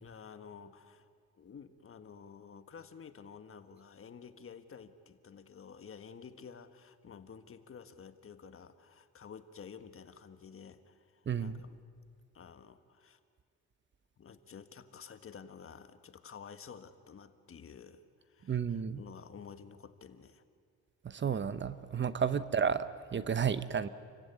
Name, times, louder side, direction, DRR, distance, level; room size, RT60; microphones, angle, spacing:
voice 1, 0.0-1.1 1.3-11.8 12.3-13.2 14.2-20.4 22.3-22.4, left 6 dB, 45° left, 10 dB, 1.6 m, -51 dB
voice 2, 11.3-11.6 18.5-19.0 21.0-23.9, right 7 dB, 40° right, 14 dB, 0.9 m, -32 dB
28.5 x 15.5 x 9.4 m, 2.1 s
cardioid pair, 90°, 30 cm